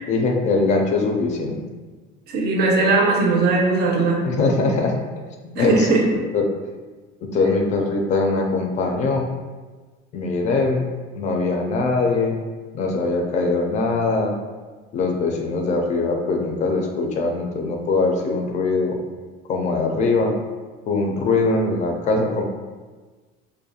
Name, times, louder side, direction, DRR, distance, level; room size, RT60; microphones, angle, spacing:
voice 1, 0.1-1.6 4.2-5.0 5.6-5.9 6.3-6.5 7.2-9.3 10.1-10.9 11.1-12.3 12.7-14.4 14.9-19.0 19.5-20.4 20.9-22.4, left 3 dB, 35° left, 2 dB, 0.4 m, -21 dB
voice 2, 2.3-4.2 5.6-6.0, right 3 dB, 55° right, 0 dB, 0.5 m, -19 dB
2.3 x 2.1 x 2.7 m, 1.3 s
cardioid pair, 135°, 20 cm